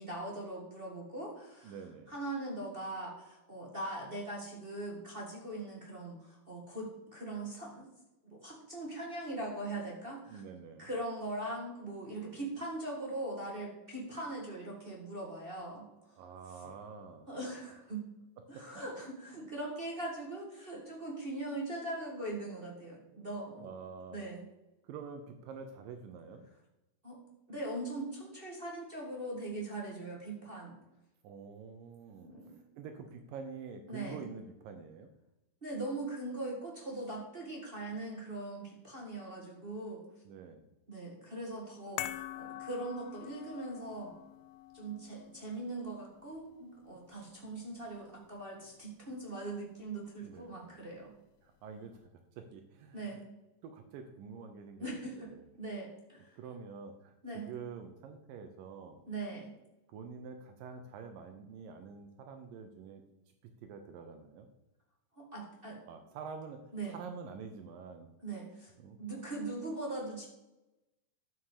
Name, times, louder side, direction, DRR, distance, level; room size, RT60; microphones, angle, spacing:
voice 1, 0.0-1.8 2.1-7.9 8.2-10.4 10.8-15.9 16.6-16.7 17.3-18.1 18.5-23.7 24.1-24.5 27.0-27.2 27.5-30.8 32.2-32.6 33.9-34.2 35.6-40.0 40.9-44.2 44.7-51.1 52.9-53.2 54.8-55.3 55.6-56.4 57.2-57.5 59.1-59.5 65.2-65.8 66.7-67.0 68.2-68.7 69.0-70.3, right 2 dB, 30° right, -3 dB, 1.0 m, -41 dB
voice 2, 1.6-2.1 10.3-10.9 16.1-17.3 18.5-18.7 23.1-23.3 23.5-24.3 24.8-26.5 31.2-32.3 32.8-35.1 40.3-40.7 50.2-50.9 51.4-52.1 52.4-53.2 53.6-55.5 56.4-59.0 59.9-63.0 63.4-64.5 65.9-66.6 66.9-68.1 68.8-69.0, right 5 dB, 75° right, 6 dB, 2.5 m, -47 dB
sound 1, 42.0-48.4 48.7-48.8, left 14 dB, 90° left, 2.4 m, -47 dB
11.5 x 7.6 x 4.9 m, 0.96 s
omnidirectional pair, 4.2 m